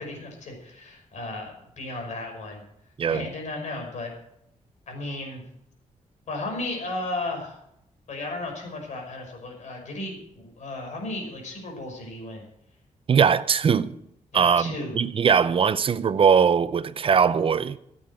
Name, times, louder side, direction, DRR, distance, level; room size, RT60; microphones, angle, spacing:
voice 1, 0.0-2.6 3.1-4.1 4.9-5.4 6.3-7.6 8.1-12.4 14.3-15.0, left 2 dB, 65° left, 5.6 m, -34 dB
voice 2, 13.1-13.9 14.3-17.8, right 6 dB, 45° right, 0.6 m, -21 dB
15.0 x 8.8 x 7.7 m
wide cardioid pair, 145°, 13 cm